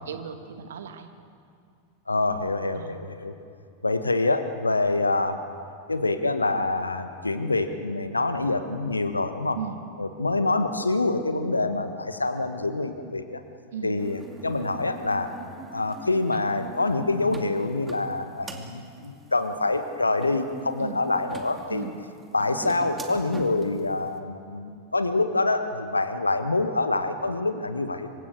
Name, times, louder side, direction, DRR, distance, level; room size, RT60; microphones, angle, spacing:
voice 1, 0.1-1.1 2.7-3.0 9.6-9.8 13.7-14.0 20.8-21.1 21.7-22.0, right 7 dB, 60° right, 7 dB, 2.0 m, -36 dB
voice 2, 2.1-3.4 3.8-5.4 5.9-9.6 10.0-13.4 13.8-15.3 15.7-21.9 22.3-28.1, left 2 dB, 80° left, 9 dB, 1.4 m, -26 dB
sound 1, 14.0-23.8, right 3 dB, 15° right, 2.4 m, -43 dB
27.0 x 25.0 x 6.4 m, 2.4 s
figure-of-eight pair, 90°, 0 cm